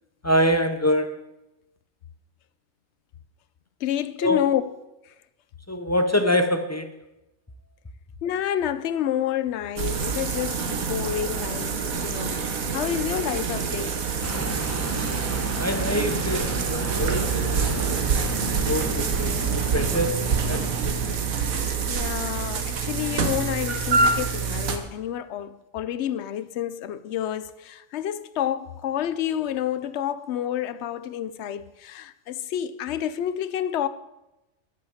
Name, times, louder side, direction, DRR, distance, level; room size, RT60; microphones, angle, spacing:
voice 1, 0.2-1.2 4.2-4.4 5.7-7.0 15.5-21.2, left 1 dB, 15° left, 0.5 m, -26 dB
voice 2, 3.8-4.6 8.2-14.0 20.8-20.9 21.9-33.9, left 10 dB, 60° left, 0.9 m, -29 dB
sound 1, 9.8-24.8, right 5 dB, 80° right, 1.6 m, -26 dB
sound 2, 14.2-20.1, right 2 dB, 10° right, 1.1 m, -34 dB
11.0 x 8.4 x 7.3 m
omnidirectional pair, 1.4 m